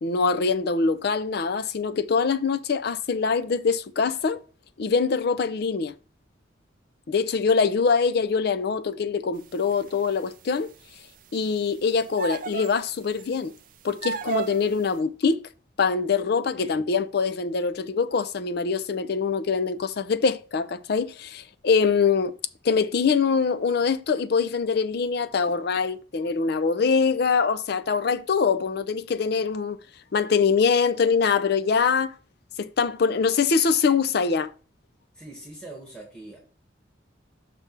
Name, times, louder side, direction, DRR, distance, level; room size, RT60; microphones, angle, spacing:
voice 1, 0.0-4.4 4.8-5.9 7.1-10.7 11.3-13.5 13.8-15.4 15.8-22.3 22.6-29.8 30.1-32.1 32.6-34.5, left 5 dB, 55° left, 0.4 m, -23 dB
sound 1, 9.7-10.1 12.2-12.8 13.2-13.3 14.0-14.7, right 6 dB, 45° right, 0.4 m, -31 dB
voice 2, 35.1-36.4, right 2 dB, 5° left, 1.6 m, -42 dB
5.9 x 3.3 x 5.9 m
head